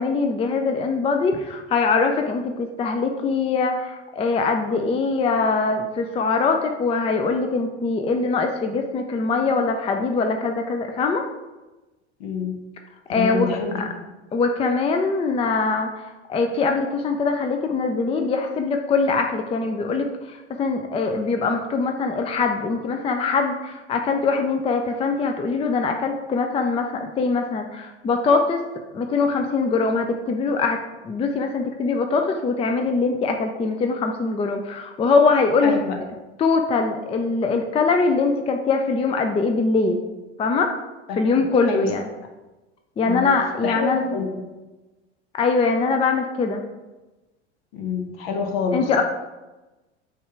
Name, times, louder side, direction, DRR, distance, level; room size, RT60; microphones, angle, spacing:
voice 1, 0.0-11.2 13.1-13.9 14.3-16.0 16.3-28.6 28.9-30.8 31.0-35.8 36.4-40.0 40.4-40.7 41.2-42.1 43.0-44.2 45.3-46.6 48.7-49.0, left 4 dB, 15° left, 4 dB, 0.5 m, -22 dB
voice 2, 12.2-12.6 13.1-13.9 35.6-36.0 41.1-41.9 43.0-43.3 43.6-44.4 47.7-48.9, left 5 dB, 55° left, 4 dB, 1.3 m, -27 dB
8.4 x 3.3 x 4.7 m, 1.1 s
figure-of-eight pair, 75°, 34 cm